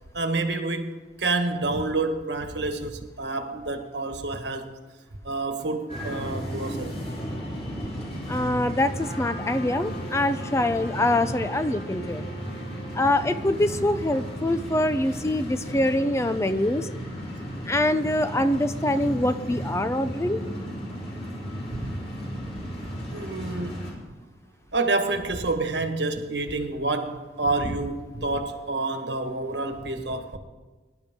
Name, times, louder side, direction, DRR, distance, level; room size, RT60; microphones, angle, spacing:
voice 1, 0.1-0.9 1.2-4.7 5.2-7.0 21.7-22.0 23.1-23.9 24.7-30.4, right 2 dB, 75° right, 6 dB, 1.5 m, -28 dB
sound 1, 5.9-23.9, equal, 35° left, 5.1 m, -34 dB
voice 2, 8.3-12.2 12.9-16.9 17.7-20.4, left 1 dB, 15° left, 11 dB, 0.5 m, -24 dB
Trumpet, 8.9-13.5, right 1 dB, 80° left, 3.1 m, -42 dB
22.0 x 11.5 x 3.7 m, 1.3 s
head